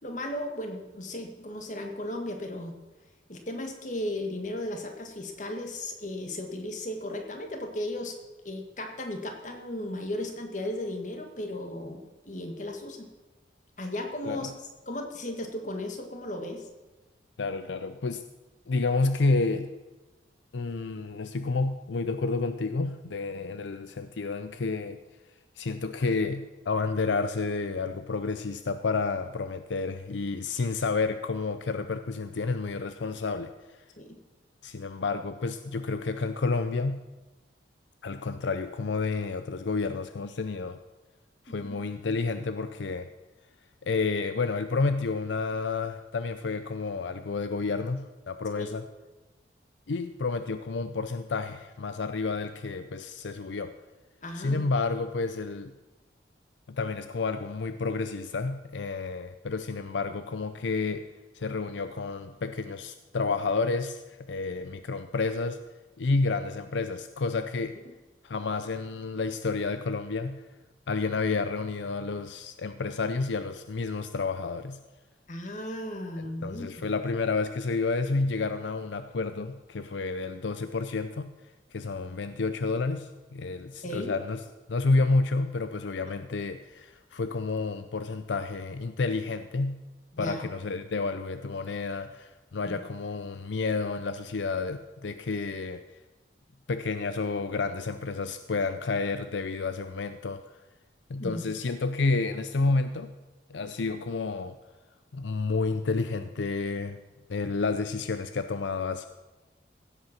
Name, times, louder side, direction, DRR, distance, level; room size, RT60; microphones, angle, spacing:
voice 1, 0.0-2.8 3.3-8.2 8.4-13.1 13.8-14.5 14.9-16.7 34.0-34.2 41.5-41.8 48.6-48.7 54.2-54.7 75.3-76.9 83.8-84.1 90.1-90.4 92.6-92.7 101.2-101.5, left 1 dB, 40° left, 4 dB, 1.7 m, -35 dB
voice 2, 17.4-18.2 18.7-19.7 20.5-25.0 25.6-33.5 34.6-37.0 38.0-40.8 41.5-43.1 43.8-48.8 49.9-53.7 54.4-55.7 56.7-61.0 61.3-65.6 66.0-67.8 68.2-70.4 70.9-74.8 76.4-81.3 81.7-84.4 84.7-89.8 90.2-95.8 96.7-100.4 101.1-103.1 103.5-104.6 105.1-107.0 107.3-109.1, left 3 dB, 75° left, 10 dB, 0.5 m, -30 dB
16.0 x 8.0 x 5.9 m, 1.2 s
head